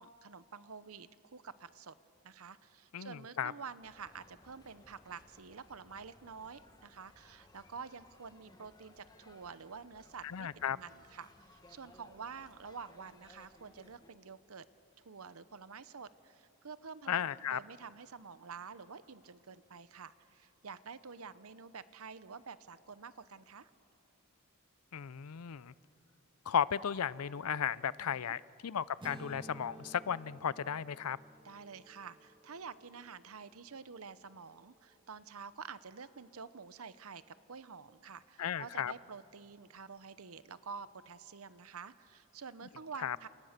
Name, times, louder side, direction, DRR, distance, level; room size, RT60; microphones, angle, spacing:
voice 1, 0.0-1.9 2.2-10.5 10.7-14.6 15.0-23.7 28.0-28.3 31.4-43.3, right 5 dB, 80° right, 15 dB, 0.8 m, -49 dB
voice 2, 2.9-3.5 10.2-10.8 17.1-17.6 24.9-25.7 26.5-31.2 38.4-38.9 43.0-43.2, left 8 dB, 85° left, 19 dB, 0.5 m, -35 dB
sound 1, 3.8-14.1, left 1 dB, 20° left, 1.5 m, -62 dB
sound 2, 29.0-33.0, right 2 dB, 20° right, 1.4 m, -53 dB
29.5 x 29.0 x 6.7 m, 2.9 s
head